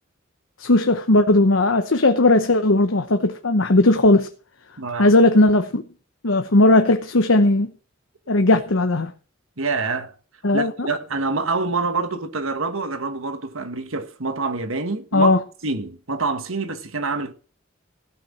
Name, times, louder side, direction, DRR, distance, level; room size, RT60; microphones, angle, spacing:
voice 1, 0.6-4.3 5.0-5.8 6.2-7.7 8.3-9.1 10.4-10.9 15.1-15.4, left 2 dB, 80° left, 1.0 m, -17 dB
voice 2, 4.8-5.2 9.6-10.1 10.5-15.4 15.6-17.3, right 3 dB, 90° right, 1.5 m, -26 dB
16.0 x 6.0 x 7.3 m
head